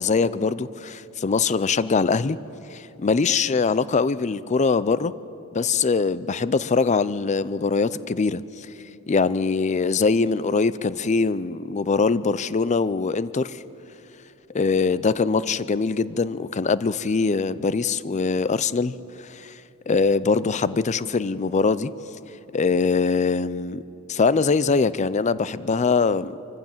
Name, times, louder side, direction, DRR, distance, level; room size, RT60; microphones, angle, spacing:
voice 1, 0.0-2.4 2.7-5.1 5.5-8.7 9.1-13.6 14.5-18.9 19.2-19.5 19.9-21.9 22.5-23.8 24.1-26.3, left 4 dB, 30° left, 17 dB, 0.5 m, -22 dB
25.0 x 15.0 x 7.4 m, 3.0 s
head